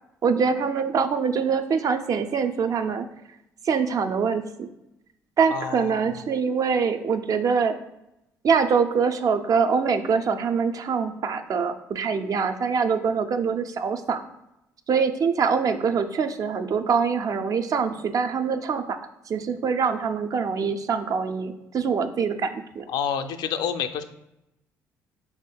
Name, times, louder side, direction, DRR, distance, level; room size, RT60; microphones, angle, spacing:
voice 1, 0.2-3.1 3.7-4.7 5.4-7.7 8.4-14.2 14.9-19.0 19.3-22.8, right 5 dB, 50° right, 8 dB, 0.4 m, -24 dB
voice 2, 5.5-6.1 22.9-24.0, left 7 dB, 65° left, 8 dB, 0.3 m, -28 dB
4.7 x 3.5 x 2.2 m, 0.88 s
hypercardioid pair, 55°, 8 cm